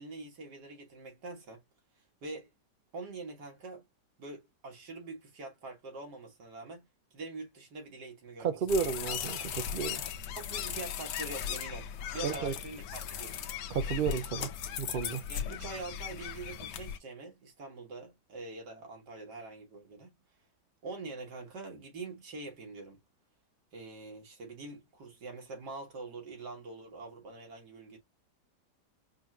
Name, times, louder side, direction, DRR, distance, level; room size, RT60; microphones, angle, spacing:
voice 1, 0.0-1.6 2.2-2.5 2.9-3.8 4.2-8.9 10.3-13.5 15.3-20.1 20.8-23.0 23.7-28.0, right 3 dB, 80° right, 2.3 m, -44 dB
voice 2, 8.4-10.0 12.2-12.5 13.7-14.5 14.8-15.2, right 6 dB, 60° right, 0.5 m, -32 dB
sound 1, 8.7-17.0, left 9 dB, 90° left, 1.3 m, -38 dB
5.0 x 2.9 x 2.3 m
omnidirectional pair, 1.8 m